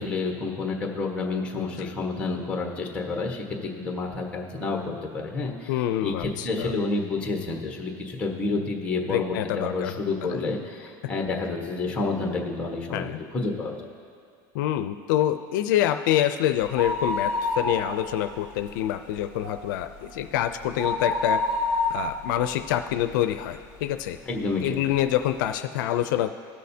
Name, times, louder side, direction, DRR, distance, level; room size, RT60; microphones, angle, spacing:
voice 1, 0.0-13.0 13.3-13.7 24.2-24.8, left 3 dB, 10° left, 0 dB, 1.3 m, -29 dB
voice 2, 1.6-1.9 5.7-6.7 9.1-9.9 10.3-10.4 12.9-13.2 14.5-21.4 21.9-24.2 24.6-26.3, left 12 dB, 80° left, 8 dB, 0.4 m, -26 dB
sound 1, 16.6-18.3 18.6-18.7 19.2-23.6 24.1-24.2 25.0-25.1 25.3-25.4, left 2 dB, 25° right, 2.0 m, -28 dB
18.5 x 6.4 x 2.8 m, 2.5 s
supercardioid pair, 160°, 10 cm